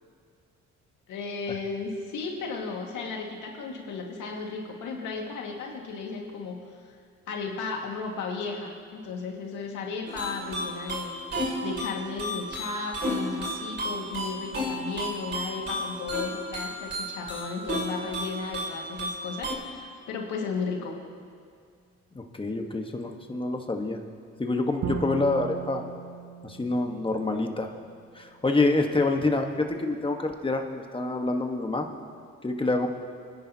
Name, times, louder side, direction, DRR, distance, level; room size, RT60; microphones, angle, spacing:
voice 1, 1.1-6.6 7.3-11.1 11.4-21.0, left 4 dB, 85° left, 0 dB, 2.0 m, -34 dB
sound 1, 10.1-19.6, equal, 35° right, 2.7 m, -33 dB
voice 2, 22.1-24.0 24.4-25.8 26.4-27.7 28.1-30.7 30.9-31.9 32.4-32.9, left 2 dB, 15° left, 4 dB, 1.3 m, -27 dB
Bowed string instrument, 24.8-27.9, right 7 dB, 60° right, 1.0 m, -37 dB
25.5 x 10.5 x 2.9 m, 2.2 s
cardioid pair, 90°, 30 cm